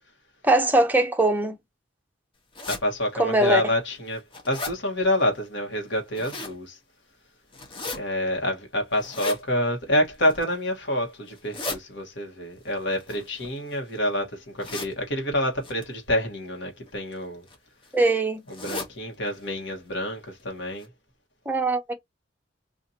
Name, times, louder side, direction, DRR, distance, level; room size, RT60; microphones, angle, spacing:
voice 1, 0.4-1.5 3.2-3.6 17.9-18.4 21.5-21.9, right 2 dB, 10° right, 0.6 m, -21 dB
Zip Sounds, 2.5-2.8 3.5-3.6 4.0-4.8 5.9-6.6 7.5-8.0 9.0-9.4 10.1-10.6 11.3-11.8 12.9-13.9 14.6-14.9 15.6-15.8 16.9-17.1 17.5-17.6 17.8-17.9 18.5-18.9 19.3-19.4 19.7-19.8 20.4-20.5 20.8-20.9, left 3 dB, 30° left, 0.9 m, -35 dB
voice 2, 2.7-6.8 7.9-17.5 18.5-20.9, left 1 dB, 65° left, 1.2 m, -27 dB
2.7 x 2.5 x 4.0 m
head